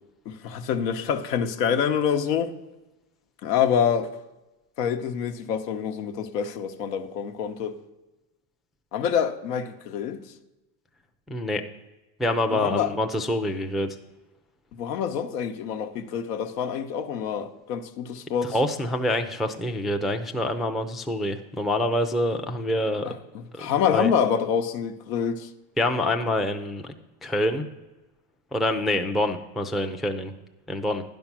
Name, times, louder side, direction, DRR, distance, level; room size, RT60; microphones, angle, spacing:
voice 1, 0.3-2.5 3.4-4.1 4.8-7.8 8.9-10.2 12.5-12.9 14.7-18.6 23.0-23.2 23.6-25.5, left 8 dB, 85° left, 0.9 m, -26 dB
voice 2, 11.3-11.6 12.2-13.9 18.5-23.1 23.5-24.1 25.8-26.9 27.2-27.7 28.5-30.3 30.7-31.0, left 1 dB, ahead, 0.3 m, -26 dB
10.5 x 5.5 x 5.9 m
supercardioid pair, 110°, 47 cm